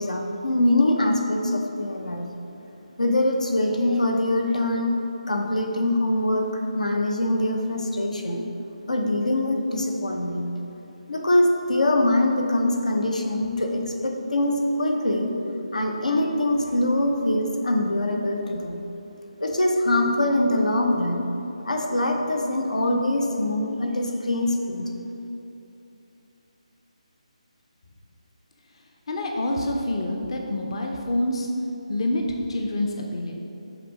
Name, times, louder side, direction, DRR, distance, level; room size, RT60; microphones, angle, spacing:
voice 1, 0.0-2.3 3.0-4.9 5.3-8.5 8.9-10.5 11.1-15.3 15.7-18.8 19.4-21.3 21.6-24.9, left 1 dB, 90° left, 3 dB, 0.9 m, -23 dB
voice 2, 29.1-31.5 31.9-32.2 32.5-33.3, left 1 dB, 50° left, 1 dB, 0.7 m, -27 dB
6.6 x 4.0 x 5.1 m, 2.9 s
figure-of-eight pair, 160°, 4 cm